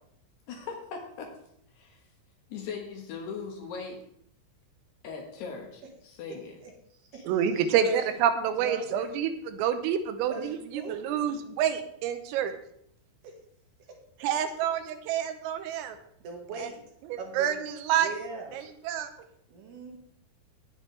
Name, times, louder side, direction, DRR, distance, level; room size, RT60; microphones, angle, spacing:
voice 1, 0.5-1.3 1.7-2.0 2.5-4.0 5.0-6.6 7.1-7.2 7.5-7.7, left 5 dB, 65° left, 2 dB, 3.1 m, -39 dB
voice 2, 6.6-7.2 7.5-8.1 8.6-9.2 10.3-11.3 13.2-13.4 13.9-14.0 16.2-16.8 17.2-17.6 17.9-18.6 19.5-20.0, right 3 dB, 60° right, 1 dB, 3.5 m, -41 dB
voice 3, 7.3-12.6 14.2-16.0 17.4-18.1 18.5-19.1, right 9 dB, 85° right, 8 dB, 3.7 m, -28 dB
19.0 x 8.8 x 3.3 m, 0.70 s
omnidirectional pair, 5.8 m